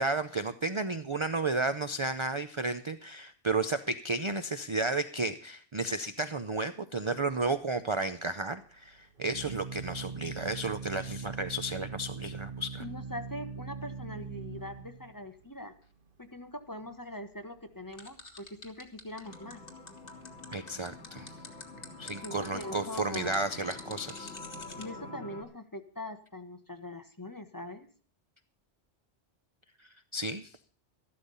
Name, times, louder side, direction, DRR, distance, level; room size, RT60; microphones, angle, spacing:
voice 1, 0.0-12.8 20.5-21.3 22.0-24.4 29.8-30.6, right 3 dB, 35° right, 10 dB, 0.6 m, -33 dB
Organ, 7.4-17.9, right 5 dB, 50° right, 1.2 m, -43 dB
voice 2, 12.8-15.7 16.2-19.6 22.1-23.4 24.8-27.9, left 1 dB, 20° left, 7 dB, 1.1 m, -42 dB
sound 1, 17.9-24.9, left 3 dB, 55° left, 2.0 m, -46 dB
sound 2, 19.2-25.4, left 2 dB, 75° left, 2.6 m, -47 dB
13.5 x 12.0 x 5.5 m, 0.41 s
omnidirectional pair, 1.1 m